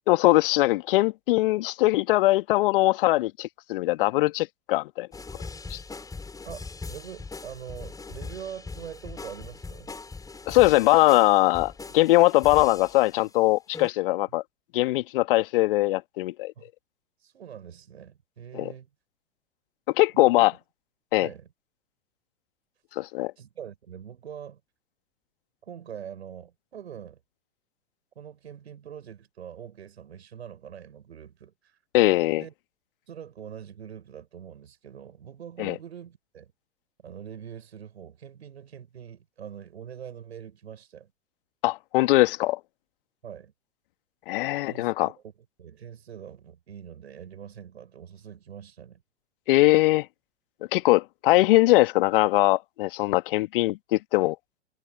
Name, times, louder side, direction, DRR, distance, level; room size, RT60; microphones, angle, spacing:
voice 1, 0.1-5.1 5.7-5.8 10.5-14.4 14.7-16.5 18.5-18.7 19.9-20.5 21.1-21.3 23.0-23.3 31.9-32.4 35.6-35.8 41.6-42.6 44.3-45.1 49.5-50.1 50.7-54.4, left 18 dB, 50° left, 1.9 m, -21 dB
sound 1, 5.1-13.3 13.7-13.9, left 4 dB, 10° left, 5.8 m, -41 dB
voice 2, 6.4-9.9 16.6-16.7 17.2-18.9 20.1-20.5 21.2-21.5 23.4-24.6 25.6-27.2 28.2-31.8 32.4-32.5 33.1-36.5 37.0-41.1 43.2-43.5 44.6-45.3 45.6-49.0, right 8 dB, 70° right, 6.9 m, -43 dB
figure-of-eight pair, 100°, 34 cm